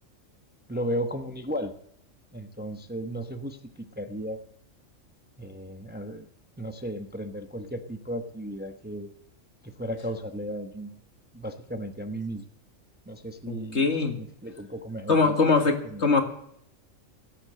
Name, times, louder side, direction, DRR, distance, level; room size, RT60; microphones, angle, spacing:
voice 1, 0.7-1.7 2.3-4.4 5.4-6.3 6.6-9.1 9.6-11.0 11.3-12.4 13.1-15.4 15.9-16.1, equal, 10° right, 6 dB, 0.9 m, -35 dB
voice 2, 13.5-14.1 15.1-15.7 16.0-16.2, left 4 dB, 60° left, 5 dB, 2.2 m, -22 dB
17.5 x 8.6 x 7.7 m, 0.69 s
omnidirectional pair, 1.3 m